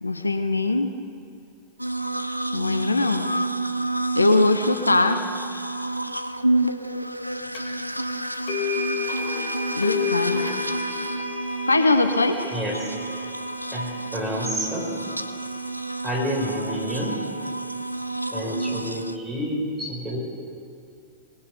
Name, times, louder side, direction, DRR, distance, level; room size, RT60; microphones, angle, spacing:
voice 1, 0.0-0.9 2.5-3.2 4.2-5.2 9.8-10.5 11.7-12.4, left 2 dB, 80° left, 9 dB, 0.7 m, -21 dB
sound 1, 1.8-19.2, right 2 dB, 90° right, 0.4 m, -29 dB
sound 2, 7.5-7.6 8.5-16.5, left 5 dB, 50° left, 2.1 m, -32 dB
voice 2, 13.7-14.9 16.0-17.1 18.3-20.2, equal, 10° right, -3 dB, 4.9 m, -29 dB
20.0 x 9.4 x 6.8 m, 2.6 s
figure-of-eight pair, 90°, 0 cm